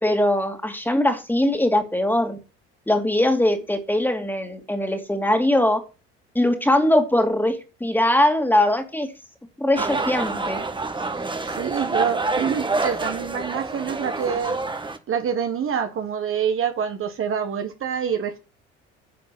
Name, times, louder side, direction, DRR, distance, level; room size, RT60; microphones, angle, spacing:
voice 1, 0.0-2.4 2.9-5.8 6.3-9.1 9.6-10.6, left 1 dB, 5° left, 2.6 m, -21 dB
sound 1, 9.8-15.0, right 3 dB, 15° right, 1.6 m, -27 dB
voice 2, 11.1-14.6 15.1-18.4, right 7 dB, 45° right, 1.6 m, -26 dB
10.0 x 5.1 x 7.8 m
supercardioid pair, 80°, 29 cm